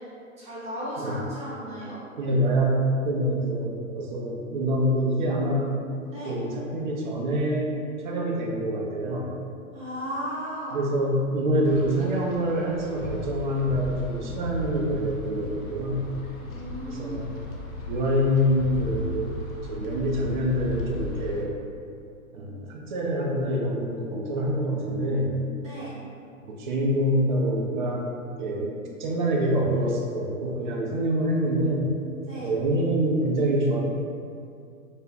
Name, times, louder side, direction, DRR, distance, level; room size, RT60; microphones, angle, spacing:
voice 1, 0.4-2.0 6.1-6.3 9.7-10.8 16.4-17.3 25.6-25.9 32.2-32.5, equal, 15° right, -9 dB, 0.8 m, -35 dB
voice 2, 2.2-5.9 6.2-7.8 8.0-9.3 10.7-16.1 16.9-17.4 17.9-19.4 19.7-21.5 22.3-25.5 26.4-28.1 28.4-31.9 32.4-33.8, equal, 35° right, -1 dB, 0.4 m, -26 dB
Wind, 11.7-21.4, left 1 dB, 70° left, 0.6 m, -36 dB
2.4 x 2.1 x 3.3 m, 2.4 s
figure-of-eight pair, 110°, 42 cm